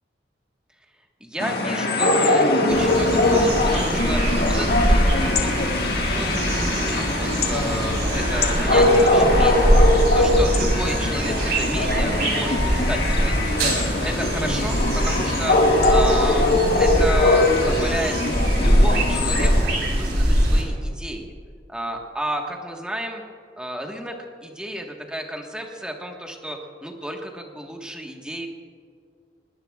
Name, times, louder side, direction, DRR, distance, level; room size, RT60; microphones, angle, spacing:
voice 1, 1.2-5.7 6.0-9.8 10.1-18.1 18.5-21.3 21.7-23.2 23.6-24.2 24.4-28.5, equal, 5° right, 1 dB, 1.4 m, -32 dB
sound 1, 1.4-19.6, left 2 dB, 60° left, 1.8 m, -21 dB
sound 2, 2.7-20.6, right 1 dB, 60° right, 3.8 m, -22 dB
20.5 x 18.0 x 2.4 m, 2.2 s
head